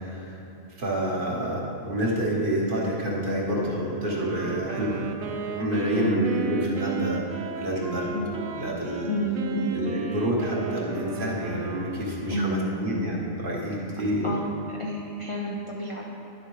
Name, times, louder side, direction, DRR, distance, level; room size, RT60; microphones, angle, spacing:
voice 1, 0.1-0.4 0.8-5.1 5.4-7.2 7.6-9.1 9.7-14.3, right 1 dB, 40° right, -4 dB, 1.4 m, -28 dB
Wind instrument woodwind instrument, 4.1-12.4, right 5 dB, 80° right, 1.1 m, -35 dB
voice 2, 5.8-6.3 8.1-8.3 9.1-9.7 12.3-12.8 14.2-14.5 14.8-16.1, equal, 45° left, -2 dB, 0.4 m, -30 dB
10.5 x 7.0 x 3.2 m, 2.8 s
omnidirectional pair, 1.4 m